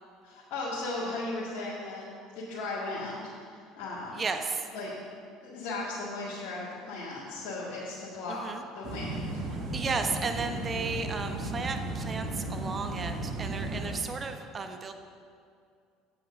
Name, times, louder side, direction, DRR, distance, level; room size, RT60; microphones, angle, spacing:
voice 1, 0.2-4.2 4.7-4.9 5.4-8.4 8.7-9.4, left 2 dB, 60° left, -8 dB, 2.0 m, -36 dB
voice 2, 4.2-4.7 8.3-8.6 9.7-14.9, right 4 dB, 30° right, 6 dB, 0.8 m, -34 dB
sound 1, 8.8-14.0, right 2 dB, 55° right, 1.7 m, -35 dB
8.3 x 6.2 x 6.4 m, 2.3 s
hypercardioid pair, 70°, 0 cm